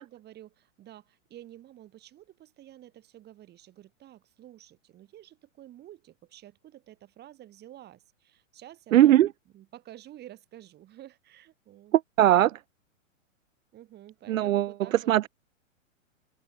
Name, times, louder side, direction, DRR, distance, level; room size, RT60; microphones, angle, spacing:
voice 1, 0.0-9.3 9.5-12.0 13.7-15.3, right 13 dB, 25° right, 4.0 m, -50 dB
voice 2, 8.9-9.3 11.9-12.6 14.3-14.7 15.1-15.3, right 13 dB, 80° right, 0.5 m, -20 dB
hypercardioid pair, 125°, 39 cm